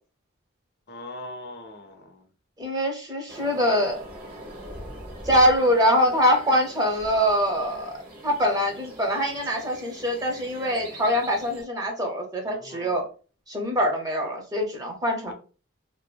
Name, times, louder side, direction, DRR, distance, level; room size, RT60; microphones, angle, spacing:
voice 1, 0.9-2.2 12.4-13.0 15.3-15.4, left 1 dB, 55° left, 5 dB, 0.5 m, -41 dB
voice 2, 2.6-4.0 5.2-8.0 8.2-13.0 13.5-15.3, equal, 20° right, 1 dB, 0.6 m, -23 dB
sound 1, 3.3-11.6, equal, 50° right, 0.9 m, -43 dB
2.5 x 2.3 x 2.2 m, 0.36 s
head